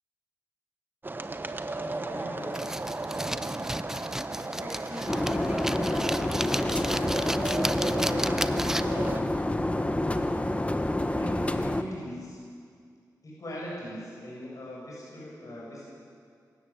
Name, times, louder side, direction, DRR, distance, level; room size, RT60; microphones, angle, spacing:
sound 1, 1.0-9.2, right 2 dB, 30° right, 1.2 m, -34 dB
voice 1, 1.9-2.7 4.4-7.6 8.1-9.1 11.1-12.4 13.2-15.8, equal, 55° left, -5 dB, 7.6 m, -41 dB
sound 2, 2.5-9.1, right 1 dB, 5° right, 0.8 m, -34 dB
sound 3, 5.1-11.8, left 1 dB, 20° left, 1.3 m, -28 dB
26.0 x 13.5 x 8.9 m, 2.2 s
cardioid pair, 65°, 7 cm